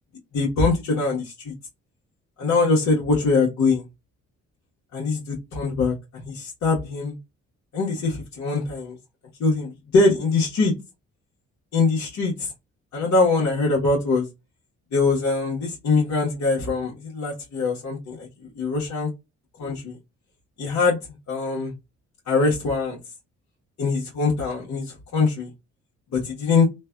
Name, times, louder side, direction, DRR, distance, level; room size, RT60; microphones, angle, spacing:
voice 1, 0.3-1.5 2.4-3.8 4.9-7.1 7.7-8.9 9.4-10.7 11.7-12.5 12.9-14.3 14.9-18.3 18.6-19.1 19.6-20.0 20.6-21.0 21.3-21.7 22.3-23.0 23.8-25.5 26.1-26.7, left 3 dB, 65° left, 1.1 m, -23 dB
3.2 x 2.2 x 2.3 m
cardioid pair, 90°, 30 cm